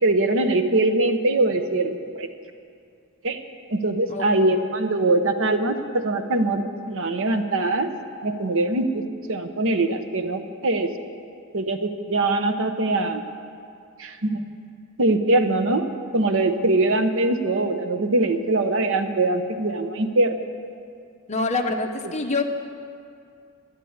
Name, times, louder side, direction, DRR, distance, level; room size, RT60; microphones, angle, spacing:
voice 1, 0.0-2.3 3.2-3.4 3.7-7.9 8.2-9.0 9.3-10.9 11.5-13.2 14.0-14.4 15.0-15.9 16.1-20.4, right 2 dB, 65° right, 8 dB, 1.0 m, -22 dB
voice 2, 21.3-22.4, left 3 dB, 35° left, 4 dB, 1.1 m, -25 dB
12.0 x 12.0 x 9.6 m, 2.4 s
head